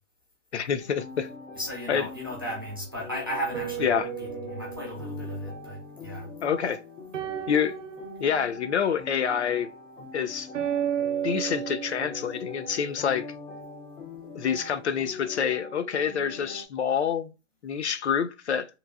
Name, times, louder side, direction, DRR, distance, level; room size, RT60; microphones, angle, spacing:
voice 1, 0.5-1.3 1.9-2.1 3.8-4.1 6.4-6.8 7.5-7.7 8.2-9.7 10.1-10.5 11.2-13.3 14.3-17.3 17.6-18.7, left 7 dB, 60° left, 0.5 m, -27 dB
sound 1, 0.8-16.7, left 3 dB, 85° left, 1.0 m, -43 dB
voice 2, 1.6-3.9 4.2-6.3, equal, 20° right, 0.4 m, -35 dB
sound 2, 3.5-5.9 7.1-8.4 10.5-12.7, right 10 dB, 70° right, 0.6 m, -33 dB
3.0 x 2.5 x 2.4 m
hypercardioid pair, 170°, 37 cm